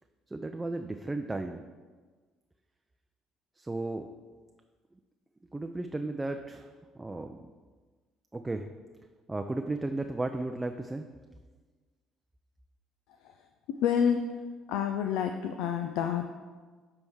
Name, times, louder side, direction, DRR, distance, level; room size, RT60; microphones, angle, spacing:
voice 1, 0.3-1.6 3.6-4.1 5.5-7.4 8.3-8.7 9.3-11.1, right 2 dB, 15° right, 5 dB, 0.5 m, -34 dB
voice 2, 13.7-14.2 14.7-16.3, left 8 dB, 75° left, 6 dB, 0.4 m, -28 dB
9.6 x 3.5 x 4.6 m, 1.4 s
hypercardioid pair, 65°, 0 cm